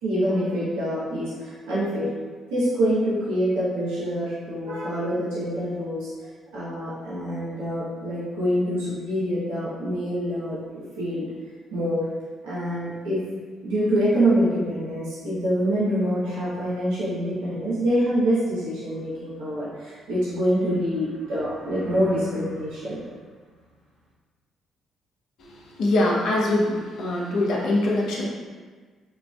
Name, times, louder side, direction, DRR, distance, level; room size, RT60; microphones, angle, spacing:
voice 1, 0.0-2.1 2.5-6.1 6.5-10.6 11.0-11.2 11.7-12.0 12.4-13.2 13.6-23.1, equal, 85° right, -10 dB, 1.0 m, -25 dB
voice 2, 25.8-28.3, left 1 dB, 70° left, -3 dB, 0.8 m, -23 dB
5.7 x 2.5 x 2.3 m, 1.5 s
hypercardioid pair, 55°, 0 cm